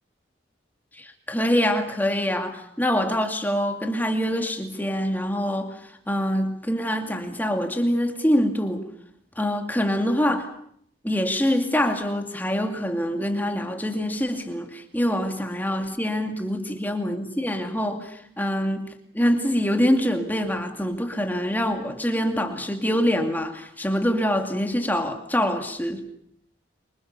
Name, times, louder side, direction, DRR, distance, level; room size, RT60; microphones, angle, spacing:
voice 1, 0.9-8.9 9.4-10.5 11.0-26.0, equal, 10° left, 2.4 m, -25 dB
27.0 x 25.0 x 6.9 m
head